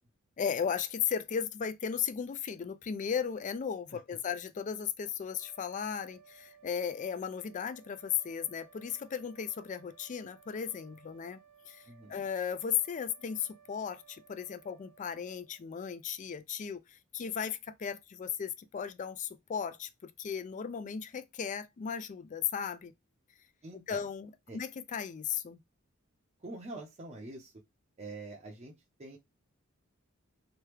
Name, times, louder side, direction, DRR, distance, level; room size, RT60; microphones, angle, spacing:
voice 1, 0.4-11.4 11.7-11.8 12.1-22.9 23.9-25.6, left 7 dB, 35° left, 0.3 m, -36 dB
sound 1, 5.3-15.9, right 7 dB, 65° right, 0.8 m, -61 dB
voice 2, 11.9-12.2 23.6-24.1 24.5-24.6 26.4-27.5 28.0-28.7 29.0-29.2, right 2 dB, 30° right, 0.6 m, -45 dB
3.0 x 2.2 x 3.3 m
head